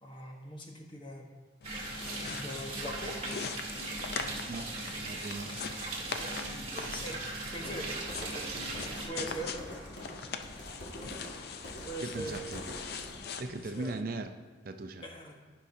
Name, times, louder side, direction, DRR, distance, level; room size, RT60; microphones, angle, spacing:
voice 1, 0.0-1.3 2.2-3.1 6.7-7.9 9.1-9.5 11.8-12.3 13.4-13.9 15.0-15.3, right 1 dB, 25° left, 1 dB, 1.1 m, -41 dB
sound 1, 1.6-14.0, left 5 dB, 55° left, 0.5 m, -43 dB
sound 2, 1.6-9.1, right 2 dB, 35° right, 1.5 m, -38 dB
voice 2, 5.0-5.5 12.0-12.6 13.4-14.3 14.6-15.1, right 2 dB, 50° right, 7 dB, 0.5 m, -38 dB
sound 3, 7.6-13.2, equal, 75° left, 2.1 m, -45 dB
15.0 x 5.6 x 2.7 m, 1.5 s
head